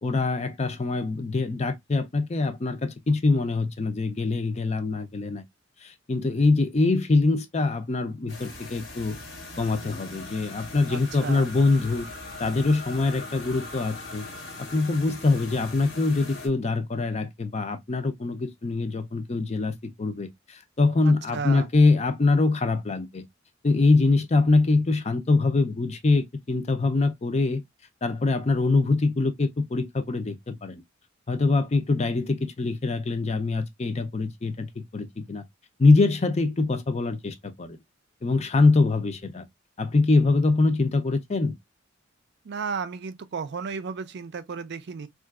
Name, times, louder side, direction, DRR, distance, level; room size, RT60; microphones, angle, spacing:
voice 1, 0.0-5.4 5.8-9.2 9.6-12.1 12.4-14.3 14.6-23.2 23.6-27.6 28.0-30.8 31.3-35.4 35.8-37.8 38.2-39.4 39.8-41.5, left 3 dB, 35° left, 0.5 m, -24 dB
sound 1, 8.3-16.5, left 2 dB, 70° left, 1.4 m, -40 dB
voice 2, 10.9-11.5 21.0-21.7 42.4-45.1, right 5 dB, 60° right, 0.5 m, -34 dB
3.7 x 2.4 x 2.3 m
head